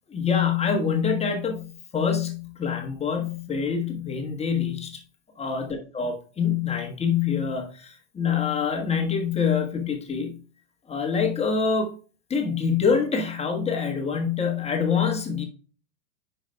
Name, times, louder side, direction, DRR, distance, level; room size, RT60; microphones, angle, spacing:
voice 1, 0.1-5.0 5.4-10.4 10.9-11.9 12.3-15.5, left 6 dB, 15° left, 2 dB, 1.4 m, -25 dB
9.8 x 5.1 x 2.2 m, 0.38 s
hypercardioid pair, 100°, 37 cm